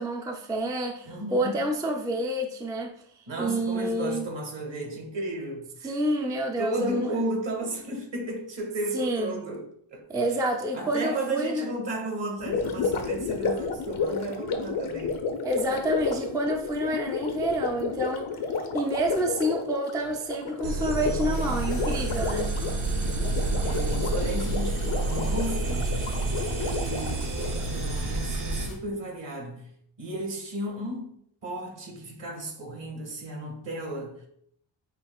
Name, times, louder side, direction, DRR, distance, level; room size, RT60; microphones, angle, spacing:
voice 1, 0.0-2.9 3.4-4.3 5.8-7.1 8.9-9.4 10.1-11.7 15.4-18.4 18.7-22.5, right 1 dB, 10° right, 0.4 m, -28 dB
voice 2, 1.0-1.7 3.3-5.9 6.6-9.7 9.9-10.2 10.7-15.2 21.0-21.5 23.6-25.9 26.6-29.7 30.0-31.1 31.4-34.3, right 1 dB, 60° right, 1.6 m, -34 dB
Gurgling, 12.4-27.7, left 4 dB, 75° left, 0.8 m, -32 dB
sound 1, 20.6-28.7, right 2 dB, 90° right, 0.8 m, -29 dB
sound 2, 21.3-28.8, left 2 dB, 90° left, 1.4 m, -43 dB
6.0 x 2.9 x 2.3 m
cardioid pair, 75°, 50 cm